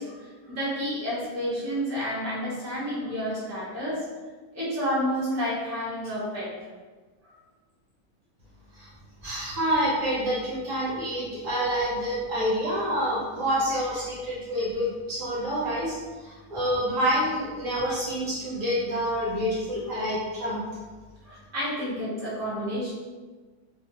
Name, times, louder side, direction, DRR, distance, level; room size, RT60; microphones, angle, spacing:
voice 1, 0.0-4.0 4.5-6.5 7.3-7.4 21.2-22.9, equal, 15° right, -8 dB, 0.6 m, -30 dB
voice 2, 9.2-20.6, equal, 60° right, -6 dB, 1.0 m, -27 dB
2.8 x 2.4 x 2.9 m, 1.3 s
omnidirectional pair, 1.7 m